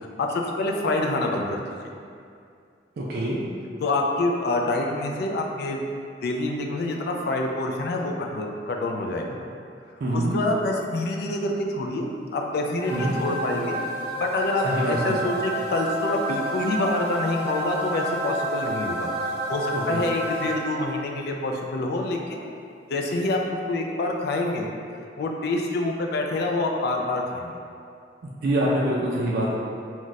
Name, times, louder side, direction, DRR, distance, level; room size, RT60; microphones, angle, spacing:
voice 1, 0.2-1.6 3.8-5.9 6.2-9.4 10.1-13.8 14.2-22.5 22.9-24.7 25.2-27.5, left 2 dB, 60° left, 1 dB, 0.3 m, -27 dB
voice 2, 3.0-3.4 10.0-10.4 12.9-13.1 14.6-15.1 19.7-20.0 28.4-29.5, right 1 dB, 55° right, -5 dB, 0.3 m, -25 dB
sound 1, 12.8-21.0, right 1 dB, 10° right, 1.0 m, -30 dB
2.4 x 2.1 x 3.9 m, 2.4 s
head